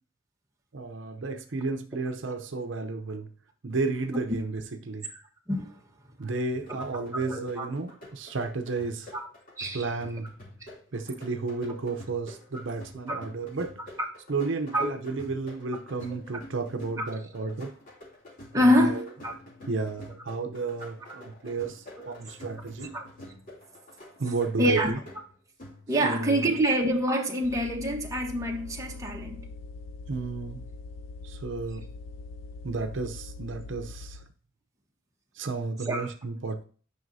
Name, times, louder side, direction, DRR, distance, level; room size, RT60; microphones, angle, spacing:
voice 1, 0.7-3.3 3.6-5.1 6.2-9.1 9.7-10.3 10.9-13.8 14.3-17.7 18.5-19.0 19.7-22.9 24.2-25.0 26.0-26.5 30.1-30.6 31.2-31.9 32.6-34.2 35.4-36.6, right 3 dB, 70° right, 0.7 m, -32 dB
sound 1, 6.5-26.2, left 1 dB, 45° left, 3.0 m, -48 dB
voice 2, 7.1-7.7 9.1-9.3 9.6-9.9 13.1-13.2 14.7-15.0 17.0-17.1 18.5-19.3 22.9-23.0 24.6-25.0 25.9-29.5 35.8-36.1, equal, 15° right, 1.3 m, -26 dB
sound 2, 27.4-34.3, left 3 dB, 85° left, 0.5 m, -42 dB
9.4 x 5.6 x 2.7 m
head